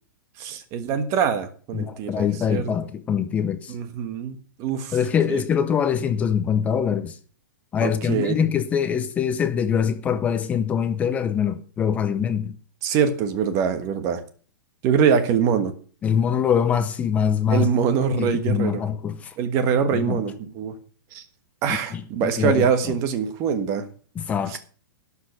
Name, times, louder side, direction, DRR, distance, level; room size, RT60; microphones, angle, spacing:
voice 1, 0.4-2.7 3.7-5.0 5.3-5.4 7.8-8.4 12.8-14.2 14.8-15.7 17.5-18.8 19.4-20.8 21.1-21.2 21.6-23.8 24.5-24.6, right 7 dB, 25° right, 1.3 m, -23 dB
voice 2, 1.7-3.7 4.9-7.1 7.7-12.6 16.0-17.7 18.1-19.3 19.9-20.2 21.9-22.6 24.2-24.6, left 8 dB, 10° left, 0.6 m, -23 dB
12.0 x 5.6 x 8.1 m
hypercardioid pair, 165°, 12 cm